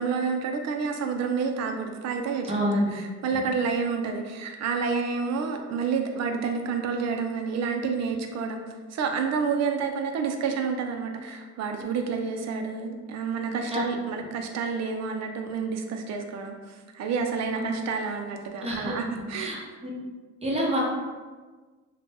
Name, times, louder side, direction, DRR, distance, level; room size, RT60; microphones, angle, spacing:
voice 1, 0.0-8.6 8.9-19.5, right 5 dB, 60° right, 4 dB, 0.5 m, -29 dB
voice 2, 2.5-2.9 13.7-13.8 17.6-17.7 18.6-19.0 19.3-19.9 20.4-20.8, equal, 20° right, -4 dB, 0.8 m, -27 dB
2.8 x 2.1 x 3.2 m, 1.4 s
cardioid pair, 90°, 30 cm